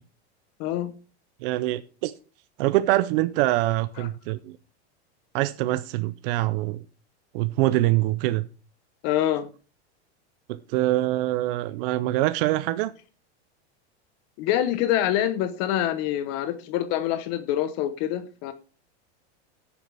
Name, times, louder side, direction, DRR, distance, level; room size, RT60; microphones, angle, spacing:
voice 1, 0.6-0.9 4.0-4.1 9.0-9.5 14.4-18.5, left 12 dB, 45° left, 1.0 m, -26 dB
voice 2, 1.4-2.1 2.6-4.6 5.3-6.8 7.3-8.5 10.5-12.9, right 16 dB, 55° right, 0.6 m, -24 dB
15.0 x 6.9 x 3.4 m
supercardioid pair, 150°, 34 cm